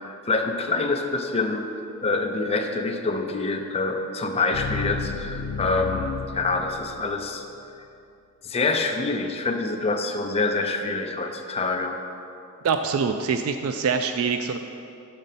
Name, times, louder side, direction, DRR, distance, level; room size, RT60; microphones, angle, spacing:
voice 1, 0.0-1.7 2.0-7.4 8.4-12.0, left 3 dB, 30° left, 3 dB, 0.5 m, -26 dB
sound 1, 3.3-7.4, left 5 dB, 85° left, 0.3 m, -34 dB
voice 2, 12.6-14.6, right 5 dB, 70° right, 7 dB, 0.3 m, -24 dB
6.2 x 5.3 x 5.6 m, 2.6 s
head